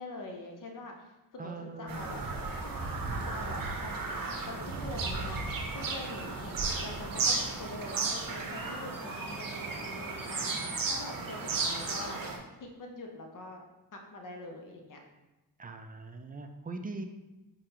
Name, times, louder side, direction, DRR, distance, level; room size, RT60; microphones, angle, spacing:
voice 1, 0.0-2.2 2.6-2.9 3.2-4.2 4.5-5.4 5.7-6.5 6.8-12.2 12.6-13.7 13.9-15.0, left 2 dB, 50° left, 2 dB, 0.8 m, -44 dB
voice 2, 1.4-2.4 15.6-17.0, right 3 dB, 25° right, 6 dB, 0.4 m, -41 dB
Bird vocalization bird call bird song, 1.9-12.4, right 3 dB, 55° right, 0.7 m, -34 dB
4.7 x 2.3 x 2.8 m, 1.1 s
cardioid pair, 55°, 40 cm